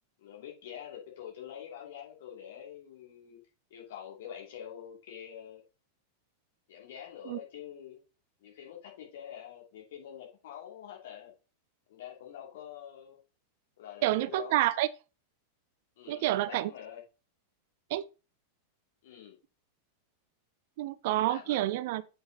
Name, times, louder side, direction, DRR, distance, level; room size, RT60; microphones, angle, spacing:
voice 1, 0.2-3.4 3.7-5.6 6.7-8.0 8.4-11.3 11.9-13.2 13.8-14.6 16.0-17.0 19.0-19.4 21.3-21.7, left 9 dB, 55° left, 2.7 m, -46 dB
voice 2, 14.0-14.9 16.1-16.7 17.9-18.0 20.8-22.0, right 15 dB, 50° right, 0.4 m, -28 dB
7.9 x 5.4 x 3.9 m
figure-of-eight pair, 90°, 0 cm